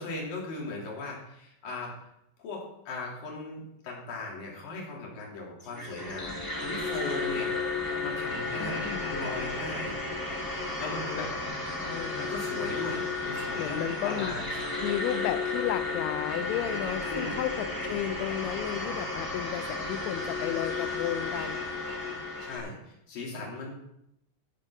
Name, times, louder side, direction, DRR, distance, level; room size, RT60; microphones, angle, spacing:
voice 1, 0.0-2.1 2.4-7.5 8.0-10.0 10.8-11.3 12.2-14.5 17.1-17.4 22.4-23.8, left 2 dB, 50° left, -3 dB, 4.2 m, -38 dB
sound 1, 5.6-22.6, left 3 dB, 5° left, 2.5 m, -33 dB
voice 2, 8.6-9.1 10.8-11.3 11.8-12.3 13.6-14.3 14.8-21.6, left 12 dB, 90° left, 11 dB, 2.6 m, -33 dB
14.0 x 7.3 x 5.9 m, 0.81 s
omnidirectional pair, 5.9 m